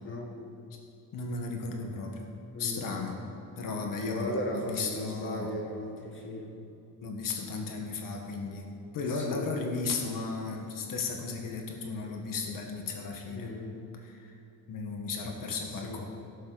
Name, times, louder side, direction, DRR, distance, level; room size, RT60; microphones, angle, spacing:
voice 1, 0.0-0.5 2.5-2.9 4.1-6.6 9.1-9.5 13.3-13.9 15.6-16.1, left 1 dB, 35° left, 0 dB, 1.6 m, -37 dB
voice 2, 1.1-3.2 3.6-5.6 7.0-8.7 8.9-13.5 13.9-14.3 14.7-16.1, left 4 dB, 60° left, 2 dB, 1.6 m, -35 dB
17.5 x 7.4 x 4.1 m, 2.7 s
cardioid pair, 180°, 36 cm